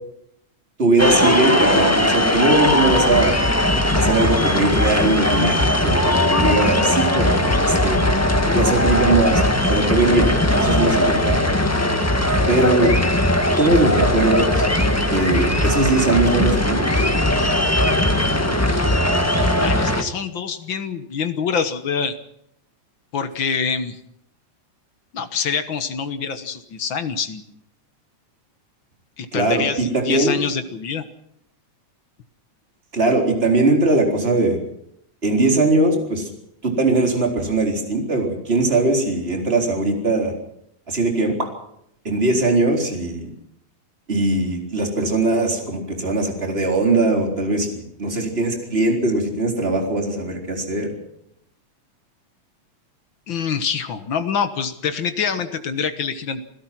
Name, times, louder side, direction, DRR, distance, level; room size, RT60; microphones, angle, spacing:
voice 1, 0.8-3.5 3.9-5.6 5.8-8.0 8.5-9.4 9.7-10.3 10.6-11.5 12.5-13.0 13.6-14.6 15.1-16.9 29.3-30.4 32.9-34.6 35.2-36.3 36.6-40.3 40.9-41.3 42.0-43.3 44.1-50.9, right 2 dB, 20° right, 2 dB, 4.1 m, -20 dB
sound 1, 1.0-20.0, left 1 dB, 15° left, 0.4 m, -19 dB
voice 2, 19.4-22.1 23.1-24.0 25.1-27.4 29.2-31.0 53.3-56.4, left 6 dB, 50° left, 10 dB, 1.5 m, -25 dB
27.5 x 16.5 x 6.0 m, 0.74 s
omnidirectional pair, 3.5 m